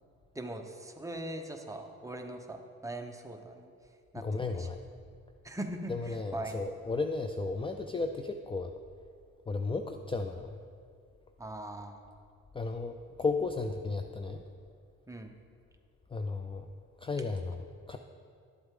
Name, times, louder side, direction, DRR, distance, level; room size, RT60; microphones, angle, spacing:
voice 1, 0.3-3.7 4.1-4.7 5.4-6.6 11.4-12.0 15.1-15.4, right 1 dB, 10° right, 4 dB, 0.9 m, -41 dB
voice 2, 4.2-4.8 5.9-8.7 9.5-10.6 12.5-14.4 16.1-16.7 17.0-18.0, left 3 dB, 15° left, 6 dB, 0.4 m, -34 dB
12.0 x 7.8 x 3.7 m, 2.3 s
cardioid pair, 90°, 30 cm